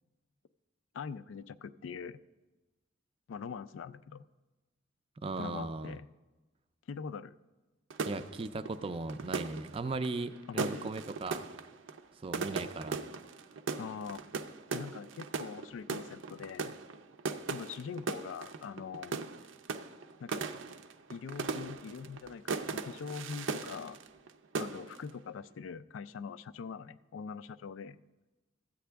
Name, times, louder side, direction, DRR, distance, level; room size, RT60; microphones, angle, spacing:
voice 1, 0.9-2.2 3.3-4.2 5.4-6.1 6.9-7.3 10.5-10.9 13.8-14.2 14.7-16.7 17.5-19.2 20.2-20.5 21.1-24.0 24.6-28.0, left 6 dB, 90° left, 13 dB, 0.3 m, -43 dB
voice 2, 5.2-5.9 8.1-11.4 12.2-13.0, right 3 dB, 30° right, 12 dB, 0.3 m, -37 dB
sound 1, 7.9-24.3 24.6-25.1, right 4 dB, 85° right, 0.5 m, -39 dB
13.5 x 8.4 x 3.4 m, 1.2 s
head